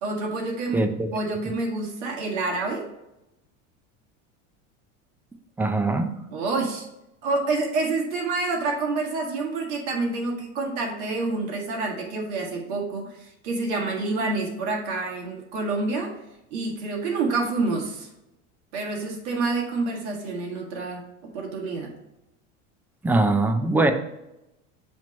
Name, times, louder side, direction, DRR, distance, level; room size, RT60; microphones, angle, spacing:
voice 1, 0.0-0.8 1.1-2.9 6.3-6.9 7.2-16.2 16.5-18.1 18.7-21.9, right 3 dB, 70° right, 0 dB, 1.9 m, -28 dB
voice 2, 0.7-1.1 5.6-6.1 23.0-23.9, right 2 dB, 5° right, 8 dB, 0.4 m, -21 dB
7.5 x 3.0 x 5.1 m, 0.90 s
supercardioid pair, 120°, 37 cm